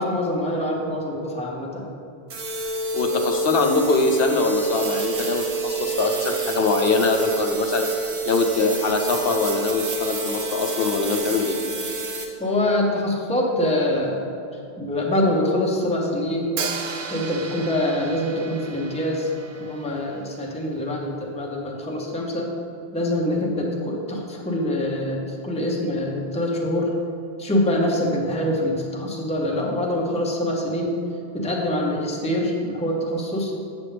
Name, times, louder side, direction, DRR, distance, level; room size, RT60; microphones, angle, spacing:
voice 1, 0.0-1.8 12.4-14.3 14.8-16.5 17.1-19.3 19.6-22.5 22.9-26.9 27.4-31.0 31.3-33.5, left 1 dB, 5° left, -2 dB, 0.8 m, -24 dB
sound 1, 2.3-12.3, right 3 dB, 75° right, 1.2 m, -28 dB
voice 2, 2.9-7.9 8.3-11.6, left 4 dB, 65° left, 4 dB, 0.9 m, -23 dB
Hi-hat, 16.6-20.5, right 5 dB, 60° right, 0.7 m, -34 dB
7.7 x 7.3 x 3.3 m, 2.5 s
omnidirectional pair, 1.1 m